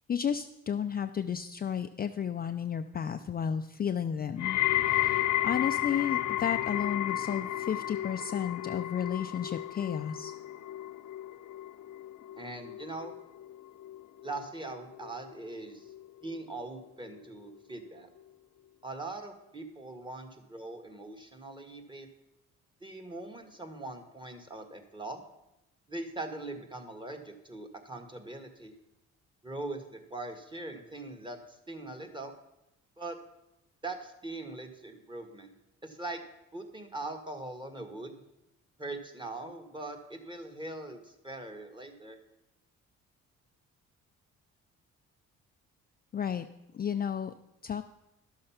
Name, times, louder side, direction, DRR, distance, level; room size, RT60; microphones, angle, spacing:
voice 1, 0.1-10.3 46.1-46.5 46.7-47.3 47.6-47.8, left 8 dB, 30° left, 8 dB, 0.4 m, -33 dB
sound 1, 4.4-15.5 15.8-16.4 17.1-17.2, left 14 dB, 75° left, 0.7 m, -33 dB
voice 2, 12.4-13.2 14.2-15.9 16.2-18.1 18.8-22.1 22.8-25.2 25.9-28.7 29.4-32.3 33.0-33.2 33.8-35.5 35.8-36.2 36.5-38.2 38.8-42.2, right 2 dB, 15° right, 4 dB, 1.6 m, -41 dB
11.5 x 6.5 x 5.8 m, 0.90 s
cardioid pair, 90°, 30 cm